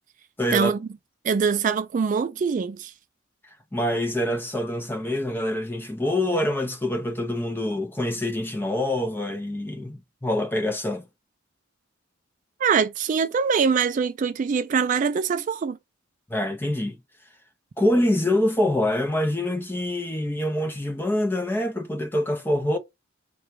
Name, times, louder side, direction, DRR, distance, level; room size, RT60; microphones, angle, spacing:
voice 1, 0.4-0.7 3.7-11.0 16.3-17.0 17.8-22.8, left 1 dB, 10° left, 0.5 m, -25 dB
voice 2, 1.2-2.9 12.6-15.8, right 6 dB, 40° right, 0.3 m, -23 dB
3.8 x 2.3 x 4.5 m
head